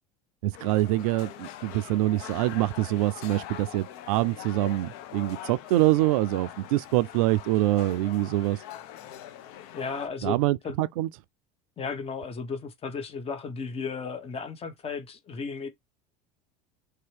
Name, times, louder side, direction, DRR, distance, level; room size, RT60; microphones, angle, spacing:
voice 1, 0.4-8.6 10.2-11.1, right 17 dB, 70° right, 0.4 m, -25 dB
sound 1, 0.5-10.1, left 11 dB, 60° left, 0.7 m, -43 dB
voice 2, 9.7-10.8 11.8-15.7, left 5 dB, 30° left, 1.1 m, -34 dB
3.3 x 2.8 x 3.2 m
hypercardioid pair, 80°, 19 cm